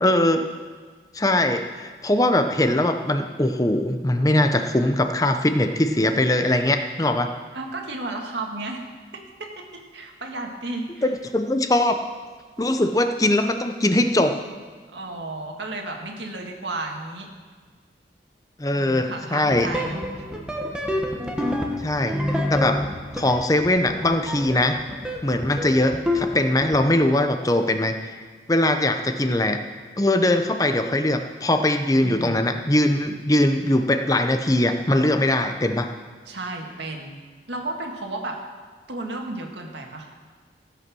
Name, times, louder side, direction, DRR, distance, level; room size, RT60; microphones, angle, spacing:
voice 1, 0.0-0.4 1.1-7.3 11.0-12.0 12.6-14.3 18.6-19.7 21.8-22.8 23.1-24.8 25.2-28.1 28.5-29.6 30.0-35.9, left 1 dB, 20° left, 7 dB, 0.7 m, -21 dB
voice 2, 7.5-11.1 14.9-17.3 18.7-20.3 32.0-32.4 36.3-37.2 37.5-38.4 38.9-40.1, right 2 dB, 80° right, 2 dB, 1.9 m, -33 dB
sound 1, 19.5-26.4 26.6-26.9, left 1 dB, 5° right, 1.2 m, -28 dB
15.5 x 8.2 x 6.2 m, 1.5 s
head